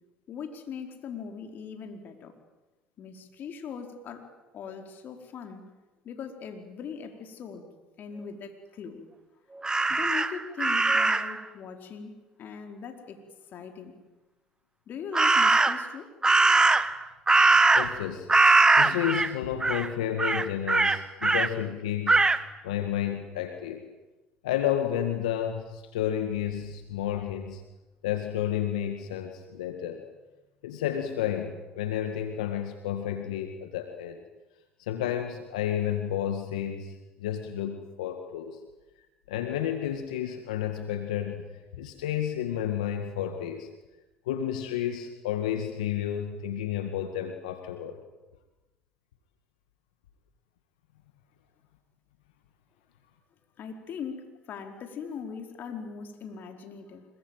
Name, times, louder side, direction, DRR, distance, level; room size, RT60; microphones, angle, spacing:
voice 1, 0.3-2.3 3.0-5.6 6.0-7.7 8.0-9.0 9.9-13.2 13.5-14.0 14.9-16.1 53.6-57.1, left 6 dB, 55° left, 5 dB, 4.7 m, -40 dB
Crow, 9.6-11.4 15.1-15.9 16.2-18.0 18.3-19.3 19.6-19.9 20.2-21.5 22.1-22.4, right 3 dB, 20° right, 1.5 m, -21 dB
voice 2, 17.7-18.3 18.8-22.2 22.6-23.8 24.4-27.6 28.0-30.0 30.6-34.2 34.8-38.6 39.3-41.4 41.8-43.7 44.3-48.0, left 10 dB, 90° left, 6 dB, 2.0 m, -31 dB
26.0 x 23.0 x 9.3 m, 1.1 s
hypercardioid pair, 70°, 4 cm